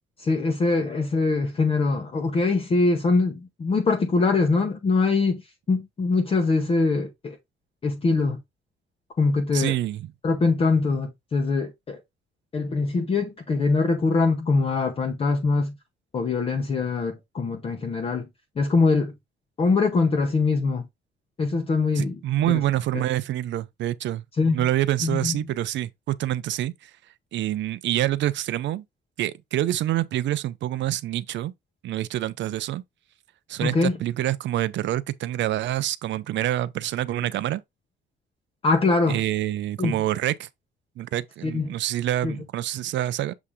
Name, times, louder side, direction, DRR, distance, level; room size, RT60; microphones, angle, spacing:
voice 1, 0.2-5.4 5.7-7.4 7.8-8.4 9.2-9.8 10.2-12.0 12.5-15.7 16.1-18.3 18.6-19.1 19.6-20.8 21.4-22.1 22.5-22.6 24.4-24.7 25.0-25.4 33.6-34.0 38.6-39.2 39.8-40.0 41.4-41.7 42.2-42.4, left 3 dB, 30° left, 0.9 m, -23 dB
voice 2, 9.5-10.1 22.0-26.9 27.3-28.8 29.2-31.5 31.8-32.8 33.5-37.6 39.1-40.5 41.0-43.3, right 13 dB, 65° right, 0.5 m, -26 dB
7.2 x 2.7 x 4.9 m
cardioid pair, 180°, 20 cm